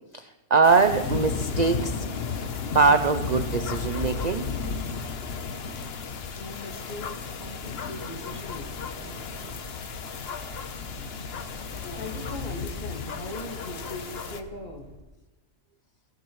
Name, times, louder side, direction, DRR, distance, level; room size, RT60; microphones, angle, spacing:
voice 1, 0.1-2.0 2.7-4.5, right 4 dB, 50° right, 8 dB, 0.5 m, -22 dB
sound 1, 0.6-14.4, left 5 dB, 50° left, 1.0 m, -33 dB
sound 2, 4.3-15.0, right 1 dB, 30° right, 4.7 m, -49 dB
voice 2, 6.4-9.6 11.8-14.9, left 1 dB, 30° left, 1 dB, 2.0 m, -40 dB
23.0 x 15.0 x 3.1 m, 1.1 s
omnidirectional pair, 1.4 m